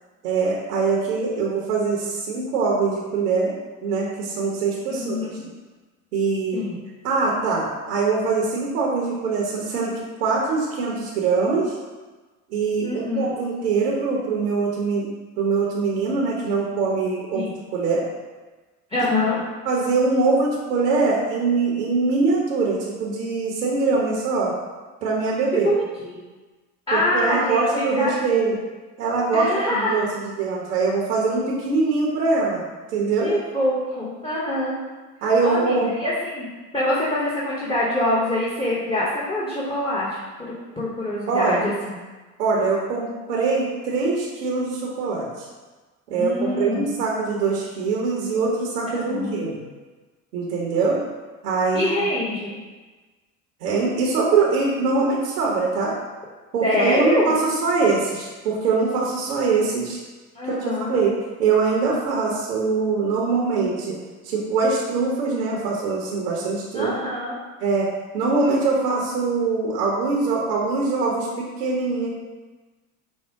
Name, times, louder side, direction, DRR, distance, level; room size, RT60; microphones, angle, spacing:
voice 1, 0.2-3.5 3.8-5.3 6.1-6.6 7.0-11.8 12.5-15.1 15.4-18.0 19.7-24.5 25.0-25.7 26.9-28.5 29.0-32.6 32.9-33.3 35.2-35.9 41.3-41.6 42.4-45.3 46.1-49.6 50.3-51.0 51.4-52.0 53.6-55.9 56.5-60.0 60.4-60.6 60.9-61.1 61.4-64.0 64.2-67.1 67.6-72.1, right 4 dB, 85° right, -3 dB, 1.0 m, -23 dB
voice 2, 4.9-5.5 6.5-6.7 12.8-13.3 17.3-17.5 18.9-19.4 25.5-26.2 26.9-27.6 28.0-28.4 29.3-29.9 33.2-34.8 35.4-41.7 46.1-46.8 48.9-49.4 51.7-52.6 56.6-57.3 60.3-60.9 66.7-67.4, left 1 dB, 10° left, -7 dB, 1.0 m, -25 dB
5.4 x 2.2 x 4.5 m, 1.3 s
hypercardioid pair, 80°, 46 cm